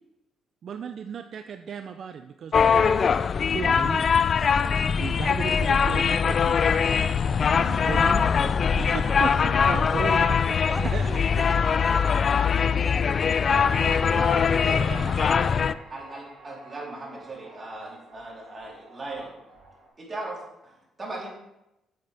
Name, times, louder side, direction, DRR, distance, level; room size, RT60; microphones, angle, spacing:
voice 1, 0.6-3.1 3.5-4.1 5.0-6.6 7.5-8.3 8.7-11.7 12.7-12.8, right 7 dB, 60° right, 8 dB, 0.4 m, -35 dB
sound 1, 2.5-15.7, left 6 dB, 50° left, 0.3 m, -22 dB
voice 2, 10.7-14.0, left 1 dB, 15° left, 6 dB, 0.7 m, -41 dB
sound 2, 11.5-19.9, right 2 dB, 85° right, 3.5 m, -50 dB
voice 3, 13.5-15.6 15.9-19.3 20.0-20.4 20.6-21.3, right 2 dB, 30° right, -4 dB, 3.5 m, -37 dB
9.4 x 7.7 x 3.4 m, 0.89 s
cardioid pair, 90°, 0 cm